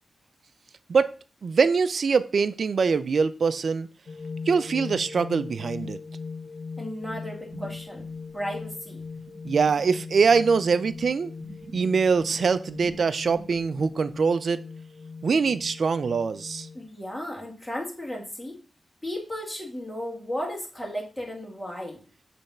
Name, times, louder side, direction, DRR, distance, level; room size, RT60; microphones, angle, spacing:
voice 1, 1.4-3.9 4.5-6.0 9.4-11.3 11.7-14.6 15.2-16.7, right 5 dB, 70° right, 0.5 m, -23 dB
sound 1, 4.1-16.9, left 4 dB, 75° left, 0.5 m, -40 dB
voice 2, 6.8-8.0 8.3-9.0 16.7-18.6 19.0-22.0, equal, 5° left, 2.2 m, -34 dB
sound 2, 7.0-11.1 11.4-14.1, right 3 dB, 45° right, 2.5 m, -48 dB
7.0 x 3.4 x 5.6 m
cardioid pair, 70°, 0 cm